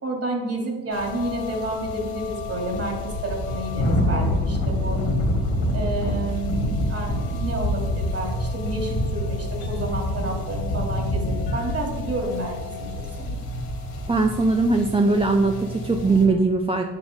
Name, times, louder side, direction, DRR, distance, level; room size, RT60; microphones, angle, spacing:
voice 1, 0.0-5.0 5.7-13.4, right 2 dB, 35° right, 1 dB, 2.9 m, -30 dB
sound 1, 0.9-16.3, left 1 dB, 65° left, 2.5 m, -27 dB
voice 2, 14.1-16.8, right 3 dB, 15° right, 3 dB, 0.6 m, -20 dB
9.1 x 7.0 x 3.7 m, 1.3 s
supercardioid pair, 75°, 42 cm